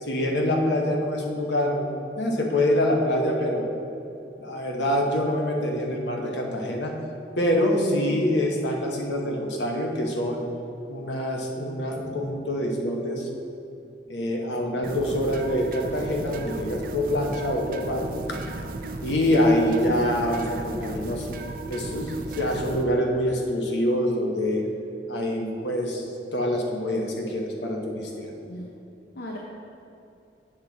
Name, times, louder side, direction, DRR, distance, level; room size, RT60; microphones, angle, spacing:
voice 1, 0.0-1.9 2.2-3.7 4.4-6.9 7.4-10.4 10.9-13.3 14.1-18.2 19.0-21.3 21.7-24.6 25.1-28.3, left 1 dB, 75° left, 1 dB, 1.0 m, -25 dB
voice 2, 7.8-8.2 19.7-19.8 28.4-28.7 29.1-29.4, left 2 dB, 60° left, -1 dB, 0.6 m, -36 dB
sound 1, 14.8-22.8, right 2 dB, 50° right, 0.5 m, -35 dB
7.9 x 6.1 x 3.9 m, 2.7 s
head